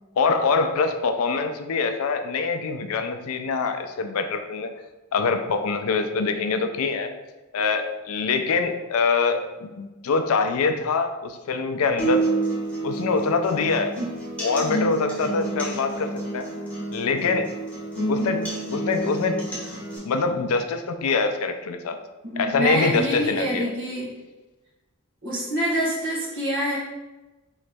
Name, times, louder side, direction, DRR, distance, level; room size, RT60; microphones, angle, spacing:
voice 1, 0.2-4.7 5.1-7.1 7.5-12.2 12.8-14.0 14.4-16.4 16.9-17.5 18.1-18.4 18.7-19.4 20.0-22.0 22.4-23.7, left 4 dB, 80° left, 7 dB, 0.4 m, -24 dB
sound 1, 12.0-20.0, right 2 dB, 5° left, 1.2 m, -29 dB
voice 2, 22.2-24.1 25.2-26.8, equal, 60° right, -7 dB, 1.3 m, -26 dB
3.9 x 3.1 x 3.4 m, 1.1 s
head